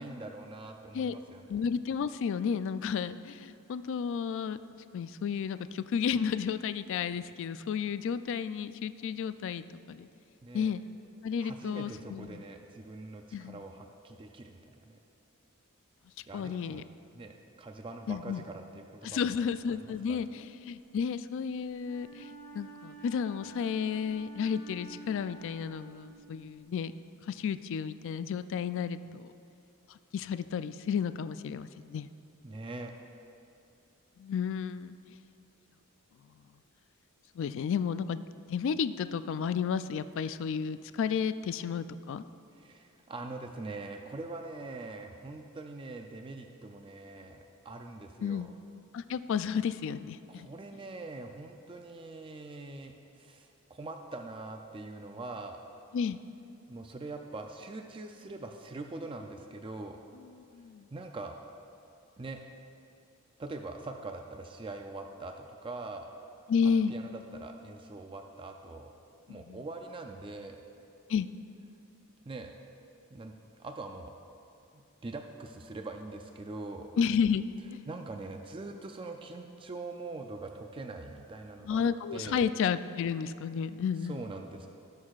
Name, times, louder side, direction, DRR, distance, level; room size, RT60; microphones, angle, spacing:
voice 1, 0.0-1.6 10.4-10.7 11.4-15.0 16.3-16.8 17.1-20.2 32.4-32.9 42.5-48.5 50.3-55.6 56.7-60.0 60.9-61.4 62.2-62.4 63.4-66.1 66.6-68.9 69.3-70.6 72.3-72.5 73.1-73.3 73.6-74.1 74.7-76.9 77.9-81.8 82.1-82.5 84.0-84.7, right 2 dB, 25° right, 4 dB, 0.4 m, -43 dB
voice 2, 1.5-4.6 4.9-10.1 10.5-10.8 11.2-12.4 13.3-13.6 16.3-16.8 18.1-18.4 19.0-26.9 27.3-29.3 30.1-32.1 34.2-35.0 37.4-38.2 38.5-42.2 48.2-48.5 48.9-50.5 55.9-56.2 60.4-60.9 66.5-66.9 69.3-69.6 71.1-71.3 77.0-77.8 81.6-84.2, left 6 dB, 60° left, 13 dB, 0.3 m, -32 dB
Wind instrument woodwind instrument, 21.8-26.6, right 4 dB, 10° left, 1.7 m, -50 dB
19.0 x 6.4 x 2.4 m, 2.6 s
head